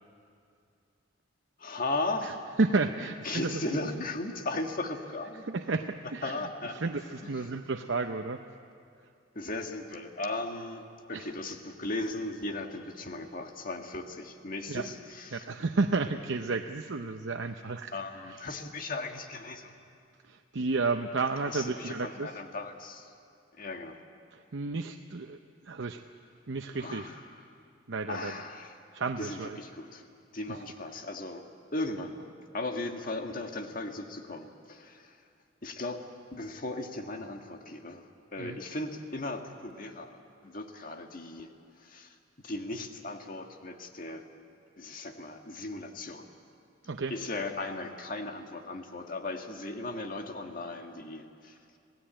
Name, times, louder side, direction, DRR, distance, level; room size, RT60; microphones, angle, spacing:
voice 1, 1.6-2.4 3.2-5.5 6.2-6.8 7.2-7.3 9.3-10.8 11.1-15.4 17.9-19.7 21.5-23.1 23.5-24.0 26.7-27.2 28.1-28.7 29.2-30.0 30.3-31.4 31.7-35.2 35.6-36.0 36.3-41.5 41.7-42.2 42.4-44.2 44.8-46.3 47.1-51.6, left 2 dB, 45° left, 4 dB, 1.7 m, -37 dB
voice 2, 2.6-3.8 5.5-6.5 6.7-8.4 11.1-11.3 14.7-14.9 15.3-17.9 18.3-18.5 20.2-22.3 24.3-26.0 26.5-27.1 27.9-28.4 28.9-29.6 30.5-30.6 38.4-38.6 46.8-47.1, right 3 dB, 75° right, 5 dB, 0.7 m, -32 dB
26.5 x 17.5 x 8.9 m, 2.4 s
head